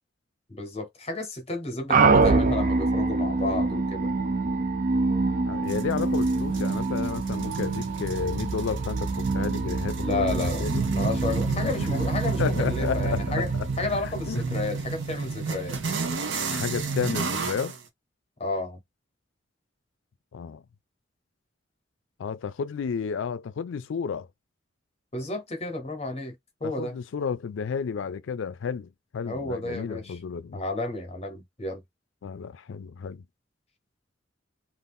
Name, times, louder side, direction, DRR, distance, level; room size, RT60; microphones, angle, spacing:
voice 1, 0.5-4.1 10.0-10.6 10.9-13.5 13.8-15.8 18.4-18.8 25.1-26.3 26.6-27.0 29.2-30.2 30.5-31.8, left 2 dB, 35° left, 0.9 m, -32 dB
sound 1, 1.9-14.8, right 3 dB, 45° right, 0.5 m, -26 dB
voice 2, 5.4-10.8 11.4-11.9 12.4-13.7 14.3-14.4 16.5-17.7 20.3-20.6 22.2-24.3 26.6-30.6 32.2-33.2, left 6 dB, 85° left, 0.4 m, -32 dB
sound 2, 5.7-17.8, right 4 dB, 85° right, 0.7 m, -33 dB
2.5 x 2.4 x 3.6 m
head